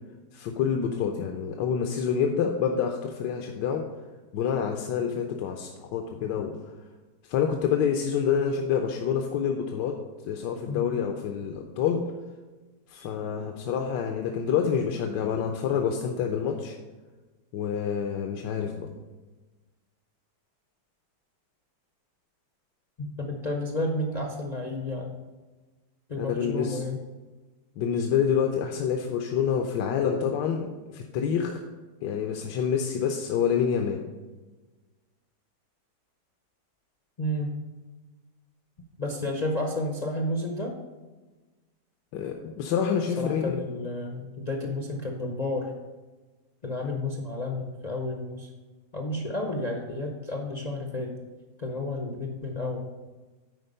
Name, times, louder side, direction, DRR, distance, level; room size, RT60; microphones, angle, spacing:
voice 1, 0.3-3.8 4.3-6.6 7.3-10.0 10.3-12.0 12.9-16.8 17.5-18.9 26.2-26.8 27.8-31.6 32.0-34.0 42.1-43.6, left 7 dB, 85° left, 3 dB, 1.3 m, -27 dB
voice 2, 23.0-25.2 26.1-27.0 37.2-37.6 39.0-40.7 43.2-45.7 46.6-48.5 48.9-51.1 51.6-52.9, left 1 dB, 50° left, 1 dB, 0.4 m, -31 dB
10.0 x 4.4 x 5.3 m, 1.2 s
omnidirectional pair, 1.9 m